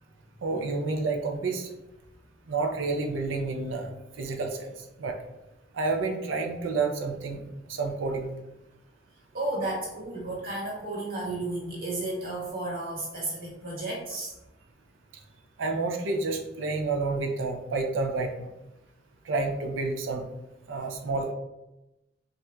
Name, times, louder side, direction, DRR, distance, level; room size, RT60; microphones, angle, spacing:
voice 1, 0.4-1.7 2.5-5.2 5.7-7.4 7.7-8.3 15.6-18.5 19.2-20.2 20.7-21.3, right 3 dB, 90° right, 3 dB, 0.5 m, -29 dB
voice 2, 9.3-14.3, right 2 dB, 50° right, -3 dB, 1.1 m, -33 dB
4.2 x 2.5 x 2.2 m, 0.93 s
head